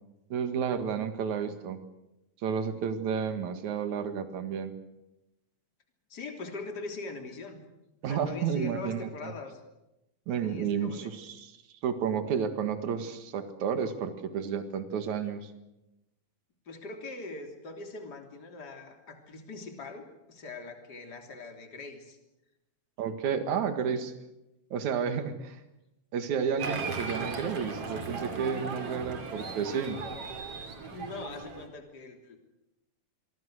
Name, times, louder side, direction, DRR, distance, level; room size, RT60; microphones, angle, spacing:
voice 1, 0.3-1.8 2.4-4.7 8.0-9.3 10.3-11.6 11.8-15.5 23.0-24.1 24.7-25.6 26.1-30.0, right 7 dB, 70° right, 8 dB, 3.1 m, -31 dB
voice 2, 6.1-7.6 8.0-9.6 10.4-11.1 16.7-22.2 30.8-32.5, left 3 dB, 30° left, 3 dB, 3.6 m, -42 dB
Applause, 26.6-31.7, right 4 dB, 50° right, 3.7 m, -37 dB
26.5 x 23.0 x 6.5 m, 0.92 s
omnidirectional pair, 3.5 m